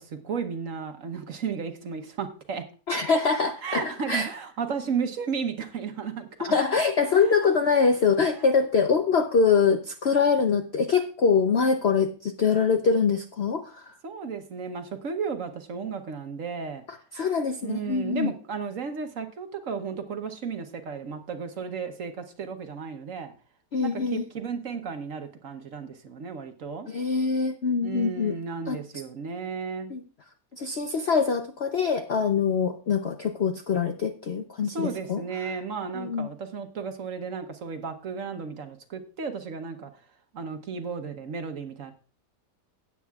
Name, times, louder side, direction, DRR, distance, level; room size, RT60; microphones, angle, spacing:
voice 1, 0.0-2.6 3.6-6.5 7.1-7.5 8.3-8.7 14.0-16.8 17.6-23.3 23.8-26.9 27.8-29.9 32.5-32.6 34.6-39.9 40.3-41.9, right 5 dB, 55° right, 7 dB, 1.1 m, -34 dB
voice 2, 2.9-4.3 6.4-13.9 17.1-18.3 23.7-24.2 26.9-28.3 28.7-28.8 29.9-30.0 30.5-35.2 35.9-36.3, left 5 dB, 60° left, 7 dB, 0.6 m, -24 dB
17.0 x 8.3 x 2.3 m, 0.36 s
omnidirectional pair, 1.9 m